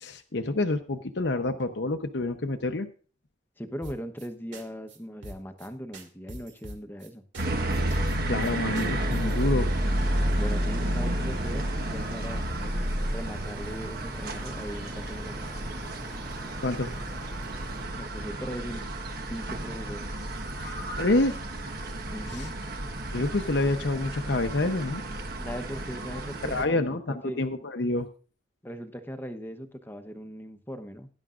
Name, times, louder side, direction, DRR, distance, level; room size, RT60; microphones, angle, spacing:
voice 1, 0.0-2.9 7.9-9.7 16.6-16.9 20.6-21.4 22.3-22.5 23.1-25.0 26.4-28.1, left 2 dB, 70° left, 6 dB, 0.8 m, -28 dB
voice 2, 3.6-7.2 10.3-12.4 13.0-15.5 18.0-18.8 19.3-20.0 22.1-22.5 25.4-27.4 28.6-31.1, equal, 10° left, 8 dB, 0.9 m, -39 dB
sound 1, 3.8-4.3 4.5-4.6 4.9-5.0 5.2-5.7 5.9-7.1 7.3-7.5 7.7-9.4, right 1 dB, 90° right, 2.6 m, -42 dB
sound 2, 7.4-26.6, right 1 dB, 55° right, 1.4 m, -31 dB
sound 3, 8.5-17.8, equal, 10° right, 1.9 m, -45 dB
18.5 x 10.5 x 2.5 m, 0.39 s
head